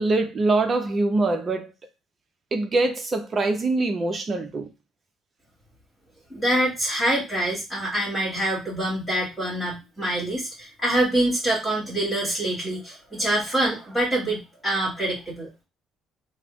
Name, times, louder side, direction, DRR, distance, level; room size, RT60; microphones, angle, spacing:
voice 1, 0.0-1.7 2.5-4.7, right 2 dB, 30° right, 0.6 m, -23 dB
voice 2, 6.3-15.5, right 1 dB, 10° left, 1.6 m, -25 dB
3.2 x 2.1 x 3.0 m
cardioid pair, 115°, 0 cm